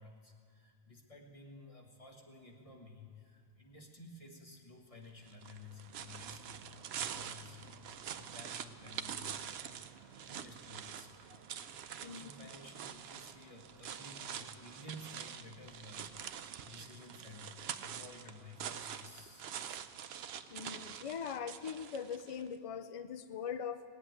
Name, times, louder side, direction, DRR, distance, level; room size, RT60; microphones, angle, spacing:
voice 1, 0.0-11.4 12.0-19.9, left 2 dB, 30° left, 0 dB, 1.7 m, -54 dB
sound 1, 5.3-22.5, right 8 dB, 75° right, 0.8 m, -45 dB
voice 2, 12.0-12.3 20.5-23.8, left 7 dB, 65° left, 11 dB, 0.3 m, -41 dB
18.5 x 8.0 x 9.3 m, 2.2 s
omnidirectional pair, 1.1 m